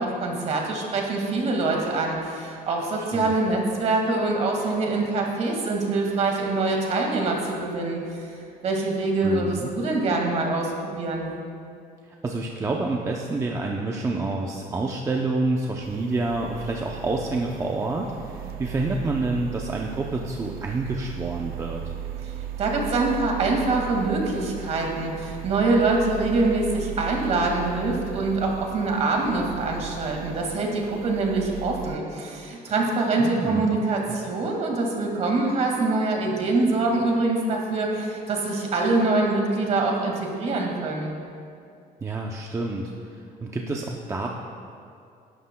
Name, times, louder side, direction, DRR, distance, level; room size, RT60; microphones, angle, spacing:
voice 1, 0.0-8.3 8.6-11.3 22.6-41.1, right 3 dB, 45° right, 0 dB, 1.9 m, -24 dB
voice 2, 9.2-9.7 12.2-21.8 33.2-33.7 42.0-44.3, right 2 dB, 20° right, 0 dB, 0.6 m, -28 dB
sound 1, 15.8-32.0, right 11 dB, 75° right, 0.5 m, -37 dB
19.0 x 11.5 x 2.2 m, 2.5 s
cardioid pair, 165°, 16 cm